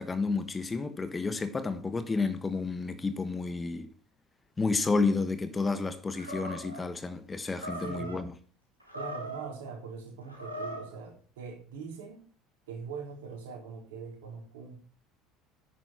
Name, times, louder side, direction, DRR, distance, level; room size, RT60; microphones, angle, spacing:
voice 1, 0.0-3.9 4.6-8.3, left 4 dB, 20° left, 1.2 m, -31 dB
Animal, 6.1-6.9 7.5-8.2 8.8-9.5 10.2-10.9, right 1 dB, 90° right, 2.9 m, -39 dB
voice 2, 7.8-8.2 8.9-12.2 12.7-14.8, right 5 dB, 65° right, 3.9 m, -42 dB
10.0 x 9.3 x 4.5 m
figure-of-eight pair, 65°, 0 cm